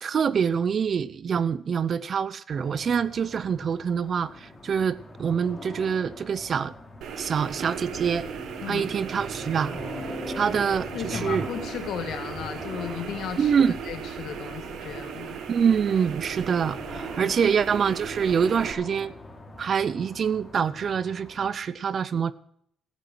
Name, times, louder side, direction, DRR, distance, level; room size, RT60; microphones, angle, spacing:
voice 1, 0.0-6.7 7.2-8.3 8.7-9.8 10.3-11.5 13.4-13.8 15.5-19.1 19.6-22.3, right 7 dB, 50° right, 0.6 m, -25 dB
sound 1, 2.5-21.5, left 2 dB, 20° left, 3.3 m, -42 dB
sound 2, 7.0-18.7, right 8 dB, 80° right, 1.4 m, -37 dB
voice 2, 10.9-13.5 13.9-15.4 17.2-17.3, left 8 dB, 75° left, 1.9 m, -35 dB
14.0 x 8.3 x 6.3 m
cardioid pair, 90°, 0 cm